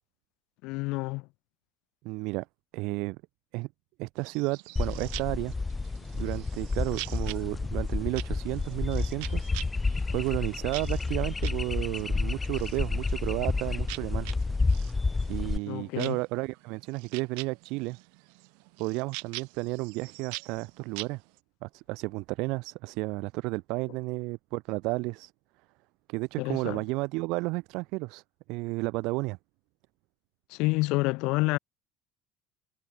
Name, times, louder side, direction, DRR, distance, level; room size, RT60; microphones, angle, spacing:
voice 1, 0.6-1.3 15.7-16.2 26.4-26.8 30.5-31.6, left 24 dB, 65° left, 2.6 m, -28 dB
voice 2, 2.0-2.4 2.7-3.2 3.5-3.7 4.0-5.5 6.1-9.5 10.1-14.3 15.3-18.0 18.8-21.2 21.6-25.3 26.1-28.2 28.5-29.4, right 24 dB, 60° right, 1.6 m, -32 dB
sound 1, 4.2-21.4, right 40 dB or more, 85° right, 7.4 m, -45 dB
sound 2, 4.8-15.6, left 3 dB, 10° left, 1.7 m, -30 dB
cardioid pair, 180°, 0 cm